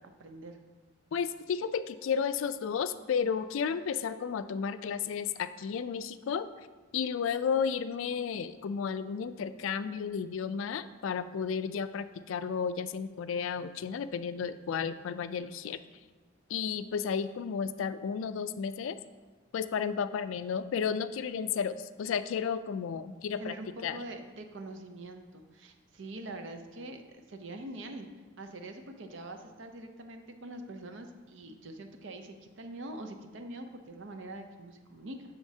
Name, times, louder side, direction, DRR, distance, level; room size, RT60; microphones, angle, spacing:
voice 1, 0.2-0.6 23.4-28.1 28.4-35.2, right 2 dB, 65° right, 6 dB, 0.6 m, -44 dB
voice 2, 1.1-6.5 6.9-15.8 16.5-19.0 19.5-23.6 23.8-24.0, left 6 dB, 75° left, 12 dB, 0.3 m, -33 dB
7.9 x 6.3 x 2.8 m, 1.3 s
head